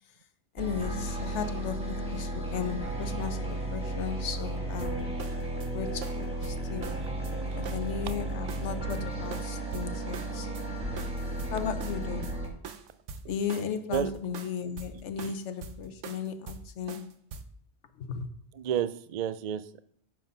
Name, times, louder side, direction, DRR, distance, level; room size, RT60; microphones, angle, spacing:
voice 1, 0.5-5.2 5.6-7.0 7.5-10.5 11.5-12.4 13.3-17.1 18.0-18.3, left 7 dB, 75° left, 1.1 m, -36 dB
sound 1, 0.6-12.5, right 1 dB, 5° right, 1.7 m, -34 dB
sound 2, 4.8-5.7 6.0-7.3 7.7-9.0 9.3-10.7 11.0-17.4, right 5 dB, 80° right, 1.1 m, -43 dB
voice 2, 10.3-11.0 13.9-14.1 15.2-15.3 18.5-19.8, right 9 dB, 65° right, 0.4 m, -32 dB
9.0 x 3.9 x 5.4 m
omnidirectional pair, 1.2 m